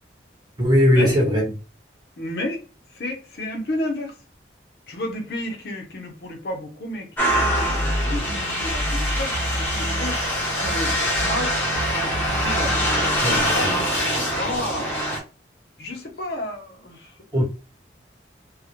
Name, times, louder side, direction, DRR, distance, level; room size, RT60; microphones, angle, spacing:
voice 1, 0.6-1.4 13.2-13.8 17.3-17.4, equal, 20° right, 1.0 m, -19 dB
voice 2, 2.2-2.6 2.9-4.2 4.9-10.2 10.6-11.6 11.9-13.7 14.1-15.0 15.8-17.2, left 1 dB, 55° left, 0.6 m, -32 dB
sound 1, 7.2-15.2, equal, 10° left, 0.6 m, -24 dB
sound 2, 7.3-10.3 10.6-13.2, equal, 65° right, 0.7 m, -29 dB
2.1 x 2.1 x 2.8 m
head